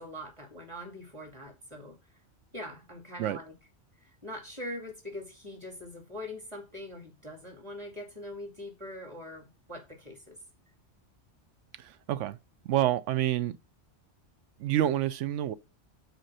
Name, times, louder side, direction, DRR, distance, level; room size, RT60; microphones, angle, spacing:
voice 1, 0.0-2.0 2.5-3.5 4.0-10.4, left 1 dB, 25° right, 2.2 m, -42 dB
voice 2, 11.8-12.4 12.6-13.5 14.6-15.5, right 12 dB, 80° right, 0.9 m, -28 dB
6.0 x 4.3 x 5.5 m
omnidirectional pair, 1.2 m